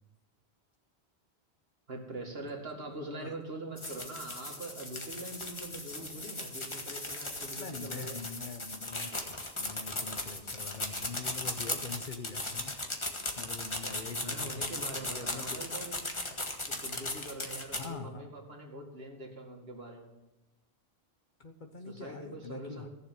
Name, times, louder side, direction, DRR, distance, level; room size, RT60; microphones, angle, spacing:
voice 1, 1.9-8.2 13.8-16.0 16.6-20.1 21.9-22.9, right 2 dB, 65° right, 1 dB, 2.3 m, -43 dB
voice 2, 2.9-3.4 7.5-12.8 13.4-15.6 17.7-18.2 21.4-22.9, left 4 dB, 50° left, 7 dB, 1.1 m, -44 dB
sound 1, 3.8-17.9, left 2 dB, 30° left, 1.4 m, -37 dB
15.0 x 7.2 x 7.5 m, 0.96 s
omnidirectional pair, 1.1 m